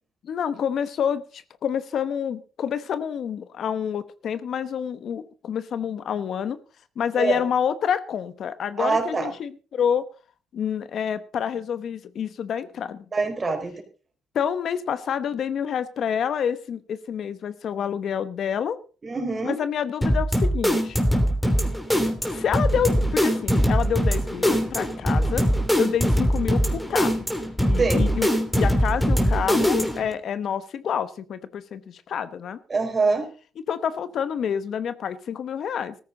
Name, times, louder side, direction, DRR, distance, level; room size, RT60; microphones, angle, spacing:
voice 1, 0.2-6.6 7.0-10.1 10.5-13.0 14.3-18.8 19.4-21.0 22.3-25.4 25.7-27.1 27.7-28.3 28.5-32.6 33.7-36.0, left 8 dB, 65° left, 14 dB, 1.0 m, -28 dB
voice 2, 8.8-9.3 13.1-13.8 19.0-19.6 27.8-28.1 32.7-33.2, right 4 dB, 35° right, 5 dB, 4.2 m, -24 dB
sound 1, 20.0-30.1, equal, 5° left, 2.9 m, -22 dB
14.0 x 14.0 x 3.9 m, 0.36 s
cardioid pair, 90°, 0 cm